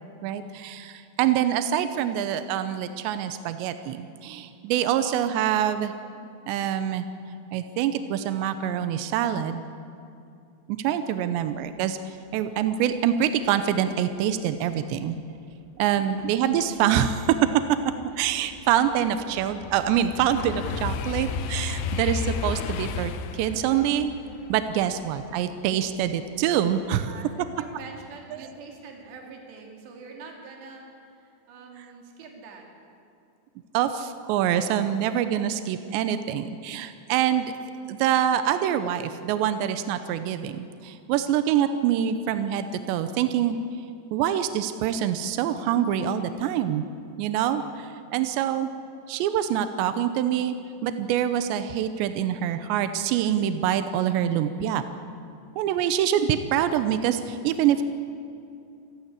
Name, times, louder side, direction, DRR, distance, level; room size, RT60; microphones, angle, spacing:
voice 1, 0.2-5.9 6.5-7.1 7.5-9.6 10.7-15.2 15.8-17.4 18.2-24.1 24.5-27.1 28.3-28.5 31.8-31.9 33.7-37.5 37.9-43.6 44.1-46.8 47.2-48.7 49.1-50.6 50.8-54.8 55.6-57.8, right 10 dB, 85° right, 10 dB, 3.0 m, -25 dB
sound 1, 16.8-16.9 17.4-26.4 26.8-27.2, left 5 dB, 80° left, 3.3 m, -33 dB
voice 2, 27.1-30.9 31.2-32.7, right 4 dB, 70° right, 1 dB, 4.8 m, -44 dB
27.0 x 15.0 x 9.9 m, 2.5 s
omnidirectional pair, 5.1 m